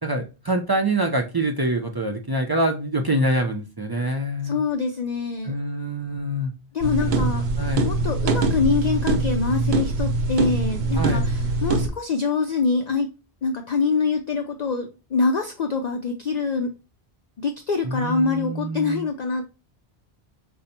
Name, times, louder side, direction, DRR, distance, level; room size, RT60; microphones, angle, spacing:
voice 1, 0.0-4.6 5.4-6.5 7.0-7.9 11.0-11.2 17.8-19.1, right 1 dB, 35° right, 0.3 m, -25 dB
voice 2, 4.4-5.5 6.7-7.4 7.8-13.1 13.4-16.7 17.4-19.4, left 4 dB, 55° left, 0.5 m, -25 dB
sound 1, 6.8-11.9, right 3 dB, 90° right, 0.9 m, -23 dB
5.3 x 2.0 x 4.2 m
omnidirectional pair, 1.0 m